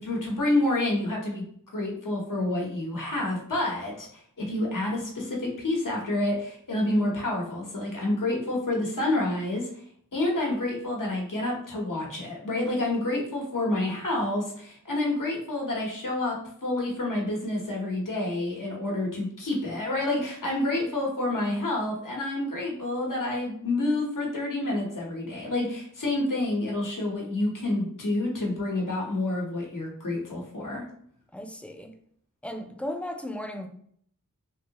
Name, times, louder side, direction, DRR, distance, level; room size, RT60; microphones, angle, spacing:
voice 1, 0.0-1.4 1.7-9.7 10.1-30.8, left 2 dB, 65° left, 1.1 m, -28 dB
voice 2, 31.3-32.0 32.4-33.7, left 1 dB, 5° left, 0.4 m, -35 dB
3.3 x 2.7 x 2.8 m
wide cardioid pair, 45°, 34 cm